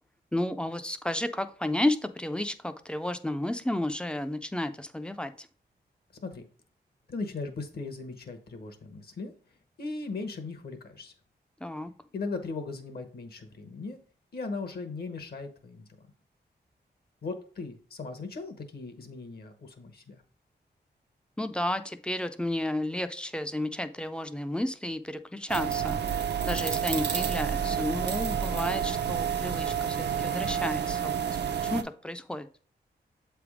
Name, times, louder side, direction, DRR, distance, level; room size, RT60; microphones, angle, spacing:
voice 1, 0.3-5.5 11.6-11.9 21.4-26.0 26.4-31.2 31.6-32.5, left 1 dB, 5° left, 0.4 m, -32 dB
voice 2, 7.1-9.3 9.8-11.1 12.1-14.0 14.3-15.9 17.2-20.2, left 3 dB, 60° left, 1.0 m, -38 dB
sound 1, 25.5-31.8, right 8 dB, 75° right, 0.6 m, -29 dB
7.8 x 3.4 x 4.8 m
wide cardioid pair, 165°, 18 cm